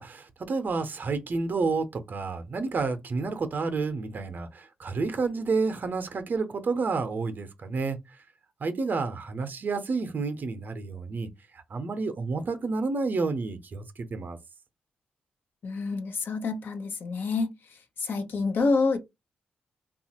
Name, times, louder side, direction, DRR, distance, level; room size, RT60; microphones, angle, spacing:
voice 1, 0.0-8.0 8.6-11.3 11.5-14.4, right 4 dB, 50° right, 0.6 m, -30 dB
voice 2, 15.6-17.5 18.0-19.0, left 4 dB, 60° left, 0.6 m, -27 dB
2.8 x 2.4 x 2.8 m
hypercardioid pair, 40°, 4 cm